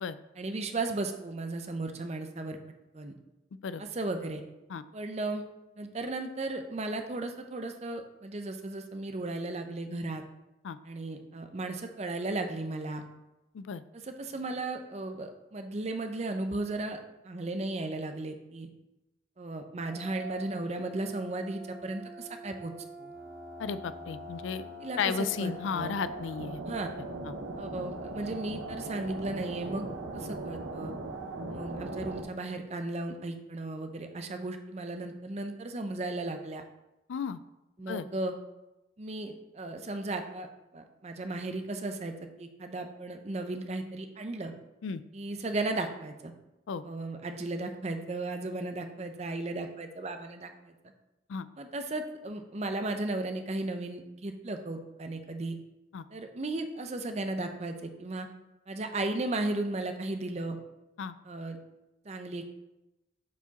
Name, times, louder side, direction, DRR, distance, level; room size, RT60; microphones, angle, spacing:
voice 1, 0.4-2.6 2.9-3.2 3.9-4.4 4.9-5.4 5.8-10.2 10.8-13.0 14.0-17.0 17.2-18.7 19.4-22.7 23.0-23.1 24.8-25.9 26.7-26.9 27.6-29.9 30.1-30.9 31.5-36.6 37.8-38.3 39.0-40.5 40.7-42.1 42.4-44.5 45.1-46.3 46.8-50.7 51.6-55.6 56.1-58.3 58.7-60.6 61.2-61.6 62.1-62.5, right 2 dB, 35° right, 6 dB, 0.6 m, -35 dB
sound 1, 19.8-32.2, right 2 dB, 90° right, 0.9 m, -41 dB
voice 2, 23.6-24.6 25.0-26.6 27.2-27.3 37.1-37.4 37.9-38.1 44.8-45.0 46.7-46.8 51.3-51.5 55.9-56.0 61.0-61.1, left 6 dB, 80° left, 14 dB, 0.4 m, -33 dB
7.3 x 4.6 x 4.0 m, 0.97 s
head